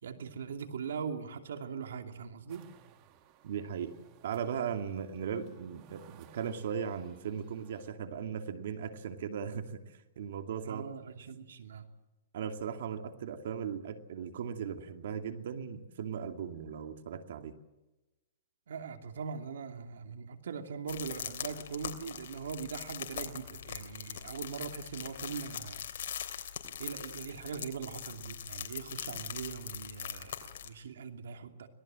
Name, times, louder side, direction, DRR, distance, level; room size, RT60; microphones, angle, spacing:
voice 1, 0.0-2.7 10.6-11.9 18.7-25.8 26.8-31.7, right 6 dB, 85° right, 6 dB, 2.7 m, -41 dB
sound 1, 2.5-7.9, right 10 dB, 35° right, 1.8 m, -59 dB
voice 2, 3.4-3.9 4.2-10.8 12.3-17.6, right 7 dB, 65° right, 7 dB, 2.4 m, -38 dB
sound 2, 20.9-30.7, left 9 dB, 70° left, 3.1 m, -42 dB
25.5 x 18.5 x 7.7 m, 1.1 s
hypercardioid pair, 155°, 0 cm